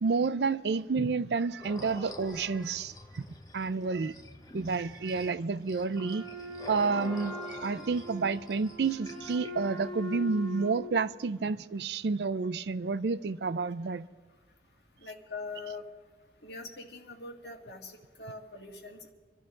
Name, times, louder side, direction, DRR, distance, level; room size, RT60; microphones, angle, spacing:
voice 1, 0.0-3.2 3.5-4.1 4.5-6.3 6.7-14.1, right 4 dB, 70° right, 0.4 m, -30 dB
sound 1, 1.6-9.7, left 2 dB, 20° left, 0.7 m, -47 dB
Wind instrument woodwind instrument, 5.9-10.8, left 1 dB, 5° left, 5.2 m, -42 dB
voice 2, 15.0-15.8 16.4-19.1, left 3 dB, 65° left, 1.9 m, -43 dB
27.0 x 12.0 x 3.8 m
head